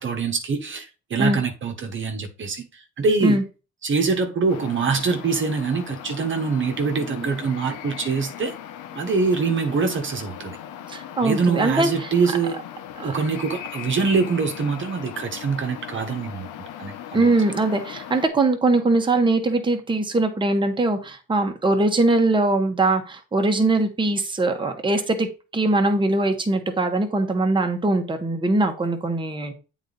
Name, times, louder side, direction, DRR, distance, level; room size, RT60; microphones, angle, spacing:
voice 1, 0.0-3.4 3.8-8.5 8.9-10.6 11.2-12.6 13.0-16.5 16.8-17.3, right 4 dB, 40° right, 1.2 m, -24 dB
sound 1, 4.5-18.3, left 10 dB, 85° left, 1.0 m, -38 dB
voice 2, 10.9-12.1 13.0-13.1 17.1-29.5, right 2 dB, 15° right, 1.3 m, -21 dB
8.2 x 4.1 x 4.0 m
cardioid pair, 100°, 30 cm